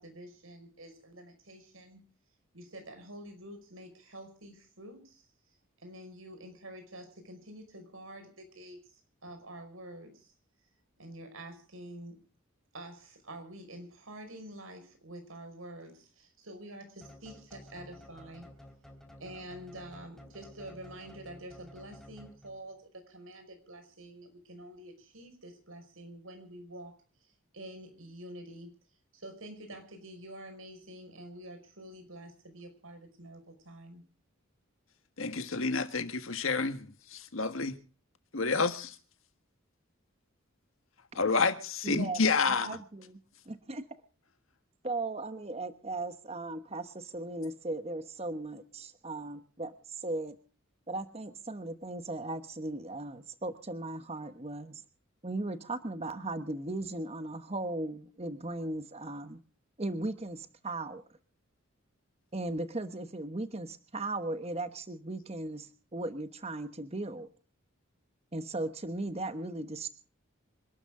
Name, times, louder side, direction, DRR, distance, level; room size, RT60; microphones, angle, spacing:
voice 1, 0.0-2.0 2.5-5.3 5.8-8.8 9.2-10.3 11.0-12.2 12.7-18.5 19.2-27.0 27.5-28.8 29.1-34.0, right 1 dB, 80° right, 5.5 m, -47 dB
sound 1, 17.0-22.8, left 1 dB, ahead, 3.0 m, -53 dB
voice 2, 35.2-37.7 38.3-38.9 41.1-42.8, left 4 dB, 75° left, 1.6 m, -29 dB
voice 3, 41.8-42.2 42.5-43.2 43.5-43.8 44.8-50.3 50.9-54.8 55.2-59.4 59.8-61.0 62.3-67.3 68.3-69.9, right 2 dB, 30° right, 1.1 m, -37 dB
27.0 x 12.5 x 3.7 m
head